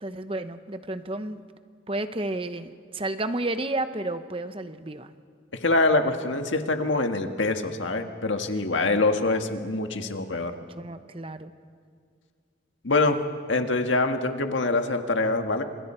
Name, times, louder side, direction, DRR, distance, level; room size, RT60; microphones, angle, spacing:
voice 1, 0.0-1.4 1.9-5.1 8.5-9.0 10.7-11.5, right 2 dB, 30° right, 10 dB, 0.9 m, -32 dB
voice 2, 5.6-10.5 12.8-13.2 13.5-15.6, left 2 dB, 80° left, 5 dB, 1.7 m, -24 dB
29.5 x 26.5 x 4.5 m, 2.1 s
head